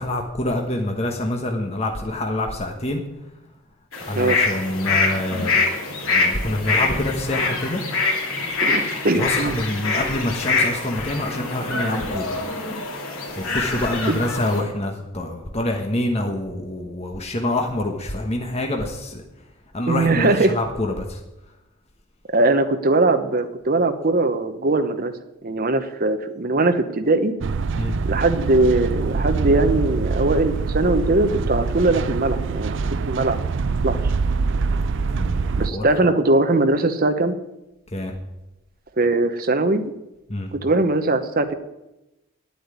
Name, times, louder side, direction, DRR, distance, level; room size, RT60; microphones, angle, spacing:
voice 1, 0.0-3.0 4.1-5.5 6.0-7.8 9.1-12.3 13.4-19.2 19.7-21.2 27.7-28.0 35.1-35.8 37.9-38.1 40.3-40.5, left 1 dB, 30° left, 2 dB, 1.3 m, -26 dB
sound 1, 3.9-14.6, left 3 dB, 75° left, 3.1 m, -24 dB
voice 2, 8.6-9.5 14.1-14.2 19.9-20.5 22.3-25.1 25.4-27.3 28.0-32.8 33.1-33.4 33.8-34.0 35.6-37.3 39.0-39.9 40.5-41.5, right 2 dB, 45° right, 9 dB, 1.0 m, -20 dB
sound 2, 27.4-35.7, right 4 dB, 60° right, 0.4 m, -24 dB
9.9 x 8.5 x 9.8 m, 0.96 s
head